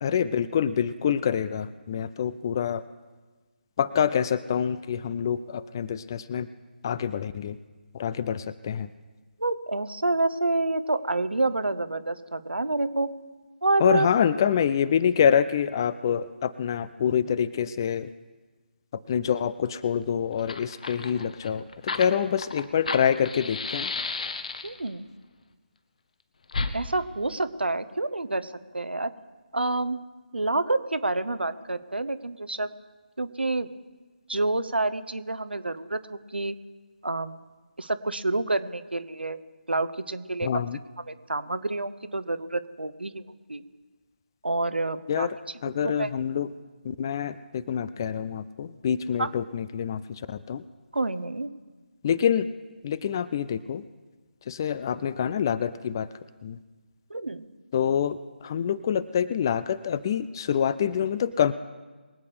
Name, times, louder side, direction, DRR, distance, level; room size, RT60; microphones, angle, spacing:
voice 1, 0.0-2.8 3.8-6.5 6.8-7.6 7.9-8.9 13.8-18.1 19.1-23.9 40.4-40.8 45.1-45.4 45.6-46.5 46.8-50.6 52.0-52.5 52.8-53.8 54.5-56.1 56.4-56.6 57.7-61.5, left 8 dB, 20° left, 16 dB, 0.4 m, -26 dB
voice 2, 9.4-13.1 13.6-14.1 24.6-25.1 26.7-29.1 29.5-30.0 30.3-32.7 33.2-33.7 34.3-36.5 37.0-37.4 37.8-39.4 39.7-40.7 41.1-43.2 43.5-43.6 44.4-45.3 45.8-46.1 49.2-49.3 50.9-51.5 57.1-57.4, right 2 dB, 75° right, 12 dB, 1.0 m, -28 dB
Fire, 20.0-20.1 20.3-24.9 26.5-26.7, left 4 dB, 45° left, 1.2 m, -33 dB
23.0 x 8.4 x 5.0 m, 1.3 s
figure-of-eight pair, 150°, 6 cm